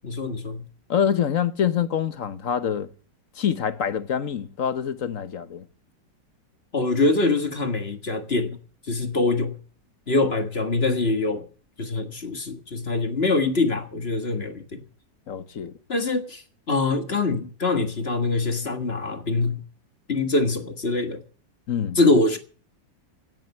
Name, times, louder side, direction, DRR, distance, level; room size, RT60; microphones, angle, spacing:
voice 1, 0.0-0.6 6.7-8.6 8.9-9.6 10.1-11.4 11.8-14.8 15.9-16.4 16.7-19.6 20.1-21.2 22.0-22.4, left 3 dB, 35° left, 1.8 m, -24 dB
voice 2, 0.9-2.9 3.4-5.6 15.3-15.7 21.7-22.0, left 8 dB, 50° left, 1.2 m, -25 dB
17.0 x 7.9 x 8.3 m
omnidirectional pair, 2.0 m